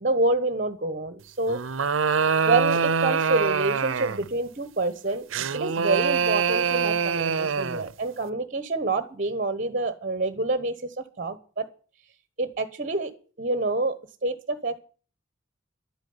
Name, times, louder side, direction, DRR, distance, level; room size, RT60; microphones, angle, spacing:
voice 1, 0.0-1.6 2.5-5.2 5.5-11.7 12.4-13.1 13.4-13.9 14.2-14.8, right 2 dB, 40° right, 12 dB, 1.2 m, -27 dB
sound 1, 1.5-4.3 5.3-7.9, right 6 dB, 85° right, 0.6 m, -24 dB
11.5 x 9.1 x 9.6 m, 0.40 s
head